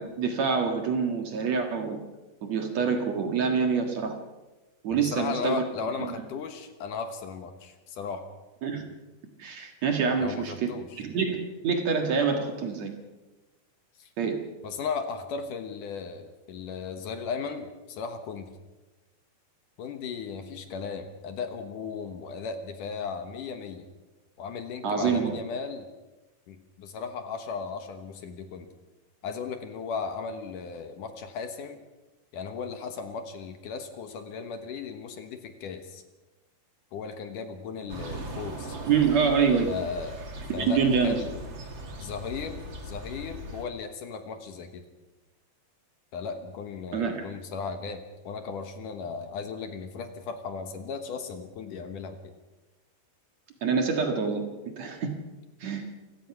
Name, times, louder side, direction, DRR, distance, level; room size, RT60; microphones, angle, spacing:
voice 1, 0.0-2.0 2.4-4.2 4.8-5.6 6.0-6.1 8.6-8.9 9.4-10.7 11.0-12.9 14.2-14.4 24.8-25.3 38.9-39.7 40.5-41.2 46.9-47.3 53.6-54.4 54.8-55.1 55.6-55.8, right 5 dB, 55° right, 4 dB, 2.5 m, -26 dB
voice 2, 4.9-8.2 10.2-11.0 14.0-14.1 14.6-18.5 19.8-23.9 24.4-25.9 26.5-28.7 29.2-31.8 32.3-36.0 36.9-38.8 39.7-40.2 40.5-41.3 42.0-44.8 46.1-52.3, left 5 dB, 65° left, 7 dB, 2.6 m, -36 dB
sound 1, 37.9-43.7, right 1 dB, 35° right, 2.5 m, -39 dB
27.5 x 16.0 x 5.9 m, 1.1 s
omnidirectional pair, 4.4 m